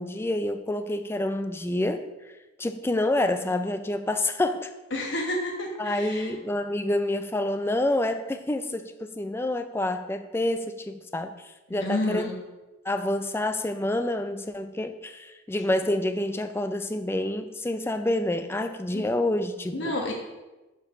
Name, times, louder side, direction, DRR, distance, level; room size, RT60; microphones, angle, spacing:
voice 1, 0.0-2.3 2.6-4.7 5.8-12.3 12.8-20.0, left 1 dB, 10° left, 8 dB, 0.3 m, -28 dB
voice 2, 4.9-6.3 11.8-12.4 18.9-19.1 19.7-20.1, left 1 dB, 60° left, 0 dB, 1.1 m, -30 dB
6.5 x 4.6 x 5.8 m, 1.1 s
head